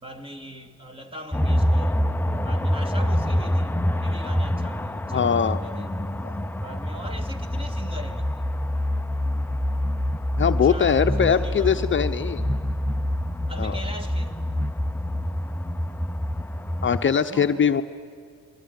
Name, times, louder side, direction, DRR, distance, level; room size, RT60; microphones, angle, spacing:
voice 1, 0.0-2.0 2.4-5.9 6.6-8.5 10.6-11.9 13.5-14.4 17.3-17.8, equal, 20° right, 2.5 m, -41 dB
sound 1, 1.3-17.1, equal, 5° left, 0.7 m, -26 dB
voice 2, 5.1-5.6 6.2-6.3 10.4-12.5 13.6-13.8 16.8-17.8, left 7 dB, 40° left, 0.9 m, -21 dB
28.0 x 21.5 x 9.5 m
cardioid pair, 90°, 30 cm